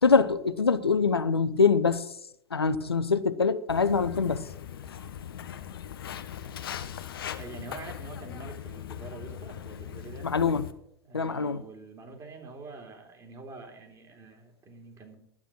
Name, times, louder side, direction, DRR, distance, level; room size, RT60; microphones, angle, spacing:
voice 1, 0.0-2.1 2.5-4.5 10.2-10.7 11.1-11.6, left 5 dB, 85° left, 0.7 m, -24 dB
Walk footsteps, 3.7-10.7, left 9 dB, 70° left, 1.1 m, -40 dB
voice 2, 7.4-10.3 11.0-15.2, right 3 dB, 25° right, 3.2 m, -45 dB
12.0 x 9.1 x 6.2 m
figure-of-eight pair, 90°, 13 cm